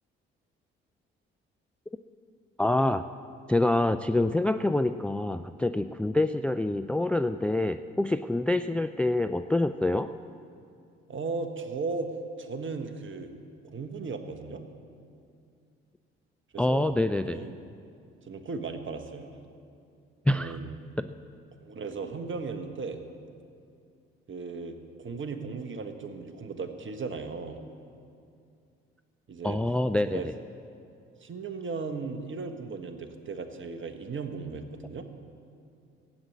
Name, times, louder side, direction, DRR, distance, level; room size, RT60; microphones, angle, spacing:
voice 1, 2.6-3.1 3.5-10.1 16.6-17.4 20.3-20.6 21.0-21.1 29.4-30.3, left 2 dB, 5° left, 10 dB, 0.4 m, -26 dB
voice 2, 11.1-12.1 12.4-13.3 13.6-14.6 16.5-16.9 17.2-17.6 18.3-19.3 20.3-20.7 21.6-23.0 24.3-27.6 29.3-29.6 30.1-30.3 31.2-35.1, right 4 dB, 40° right, 6 dB, 1.6 m, -36 dB
16.0 x 8.8 x 8.1 m, 2.4 s
hypercardioid pair, 45°, 30 cm